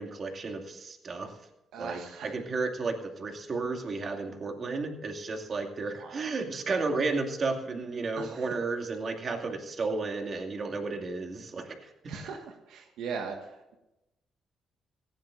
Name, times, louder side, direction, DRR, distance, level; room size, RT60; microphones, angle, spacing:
voice 1, 0.0-1.4 1.8-11.9, right 3 dB, 45° right, 3 dB, 2.4 m, -33 dB
voice 2, 1.7-2.3 6.0-6.3 8.1-8.5 12.1-12.4 12.7-13.4, right 5 dB, 80° right, 4 dB, 1.7 m, -38 dB
17.5 x 16.0 x 2.6 m, 0.92 s
cardioid pair, 90°, 0 cm